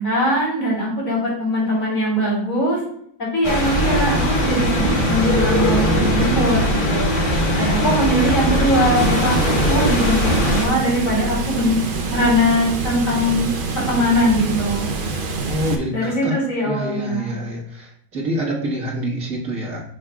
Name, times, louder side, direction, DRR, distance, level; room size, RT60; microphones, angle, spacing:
voice 1, 0.0-2.8 3.2-7.2 7.6-11.8 12.1-13.5 13.7-14.9 15.9-17.3, equal, 55° left, -5 dB, 3.5 m, -21 dB
sound 1, 3.4-10.7, equal, 35° left, 1.6 m, -19 dB
Water, 8.9-15.7, right 4 dB, 45° right, 0.8 m, -26 dB
voice 2, 15.4-16.4 16.6-19.8, equal, 60° right, -4 dB, 2.1 m, -26 dB
9.2 x 6.2 x 2.4 m, 0.67 s
omnidirectional pair, 1.6 m